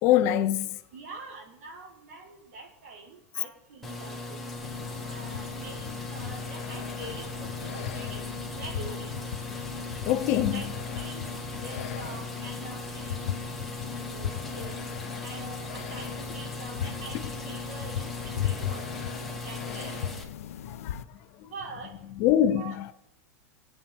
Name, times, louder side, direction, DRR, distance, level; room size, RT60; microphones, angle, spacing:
voice 1, 0.0-0.8 10.0-10.6 20.7-21.0 22.2-22.9, left 11 dB, 30° left, 0.5 m, -24 dB
voice 2, 0.9-4.4 5.1-8.2 8.6-9.1 10.5-13.3 13.9-14.8 15.2-18.8 19.4-20.0 21.4-21.9 22.6-22.9, right 3 dB, 75° right, 3.5 m, -44 dB
sound 1, 3.8-20.2, left 2 dB, ahead, 1.2 m, -38 dB
sound 2, 4.6-21.0, left 10 dB, 80° left, 0.6 m, -37 dB
20.0 x 8.3 x 3.5 m
supercardioid pair, 175°, 8 cm